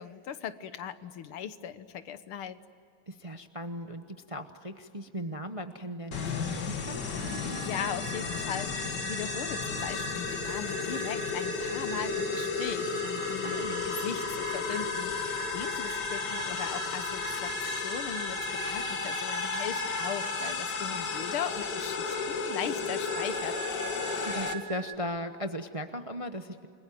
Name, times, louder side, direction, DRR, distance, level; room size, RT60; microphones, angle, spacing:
voice 1, 0.0-2.6 7.6-23.6, left 8 dB, 85° left, 12 dB, 2.0 m, -38 dB
voice 2, 3.1-7.0 13.4-13.8 24.3-26.7, equal, 30° right, 7 dB, 0.6 m, -37 dB
sound 1, 6.1-24.5, left 5 dB, 55° left, 2.3 m, -33 dB
sound 2, 7.2-20.9 22.8-25.0, right 14 dB, 70° right, 2.2 m, -43 dB
29.5 x 21.5 x 9.3 m, 2.6 s
omnidirectional pair, 2.3 m